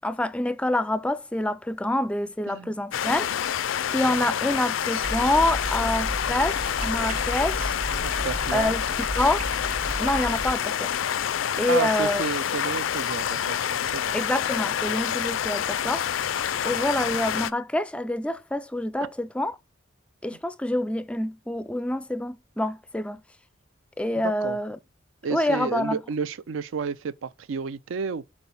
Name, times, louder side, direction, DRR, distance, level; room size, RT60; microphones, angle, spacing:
voice 1, 0.0-3.3 3.9-7.8 8.5-9.5 10.0-10.9 11.5-12.3 14.1-16.1 16.6-19.6 20.2-23.2 24.0-24.8 25.3-26.0, left 1 dB, 5° left, 0.4 m, -26 dB
sound 1, 2.9-17.5, left 9 dB, 75° left, 0.4 m, -27 dB
voice 2, 4.0-4.3 8.0-8.7 11.7-14.1 24.2-24.6 25.2-28.3, right 5 dB, 75° right, 0.4 m, -31 dB
sound 2, 5.0-10.5, equal, 40° right, 1.3 m, -33 dB
6.1 x 4.1 x 5.4 m
head